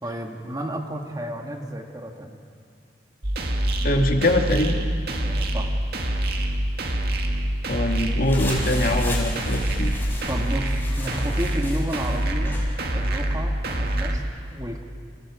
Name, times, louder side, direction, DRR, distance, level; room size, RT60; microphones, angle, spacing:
voice 1, 0.0-2.4 5.2-5.8 10.3-12.6 12.9-14.8, right 1 dB, 20° right, 2 dB, 1.9 m, -32 dB
sound 1, 3.2-14.2, right 1 dB, 60° right, 2.0 m, -25 dB
voice 2, 3.8-4.8 7.7-9.9, left 1 dB, 55° left, 3 dB, 2.0 m, -23 dB
sound 2, 8.2-12.7, left 1 dB, 15° left, 4.9 m, -34 dB
29.5 x 28.0 x 5.0 m, 2.2 s
head